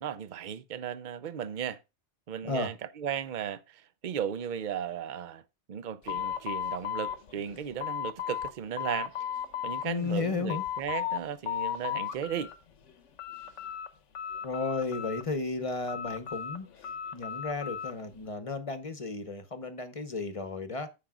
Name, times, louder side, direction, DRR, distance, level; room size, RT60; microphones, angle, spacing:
voice 1, 0.0-1.8 2.3-5.4 5.7-9.1 9.6-12.5, right 9 dB, 50° right, 0.7 m, -36 dB
sound 1, 6.1-8.5 8.8-9.9 10.2-11.2 11.5-12.5 12.9-13.9 14.1-15.4 15.9-18.0, left 9 dB, 80° left, 1.2 m, -35 dB
voice 2, 9.8-10.6 14.4-20.9, left 4 dB, 30° left, 0.9 m, -34 dB
15.0 x 5.1 x 2.4 m
omnidirectional pair, 1.2 m